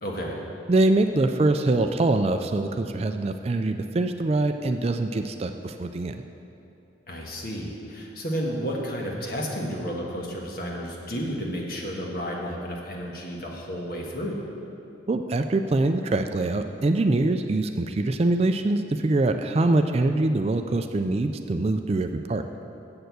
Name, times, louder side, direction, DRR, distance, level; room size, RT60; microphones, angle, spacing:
voice 1, 0.0-0.4 7.1-14.4, equal, 50° left, -1 dB, 1.4 m, -32 dB
voice 2, 0.7-6.2 15.1-22.4, right 2 dB, 35° right, 7 dB, 0.3 m, -24 dB
7.7 x 6.8 x 8.1 m, 2.8 s
head